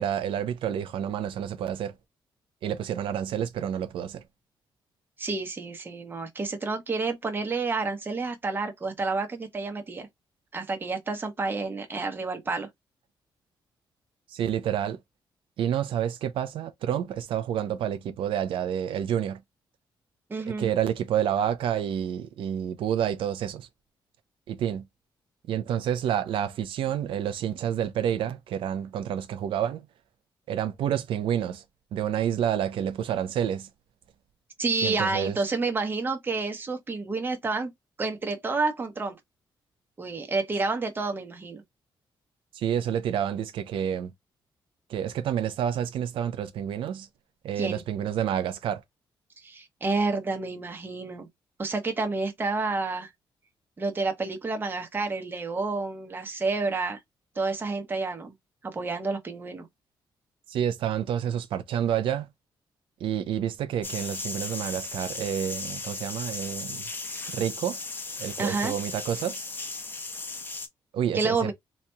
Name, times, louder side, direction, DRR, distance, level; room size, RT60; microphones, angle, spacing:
voice 1, 0.0-1.9 2.6-4.2 14.3-15.0 15.6-19.4 20.6-23.7 24.5-24.8 25.5-29.8 30.5-31.6 31.9-33.7 34.8-35.4 42.5-44.1 44.9-47.1 47.4-48.8 60.5-62.3 63.0-66.8 67.3-67.8 68.2-69.5 70.9-71.5, right 9 dB, 90° right, 0.6 m, -29 dB
voice 2, 5.2-10.1 10.5-12.7 20.3-20.7 34.6-37.7 38.0-39.2 40.0-41.6 47.6-47.8 49.4-51.3 51.6-53.1 53.8-57.0 57.3-58.3 58.6-59.7 68.4-68.7 71.1-71.5, right 3 dB, 25° right, 1.0 m, -29 dB
sound 1, 63.8-70.7, left 3 dB, 25° left, 0.9 m, -36 dB
4.0 x 2.9 x 2.2 m
wide cardioid pair, 150°, 9 cm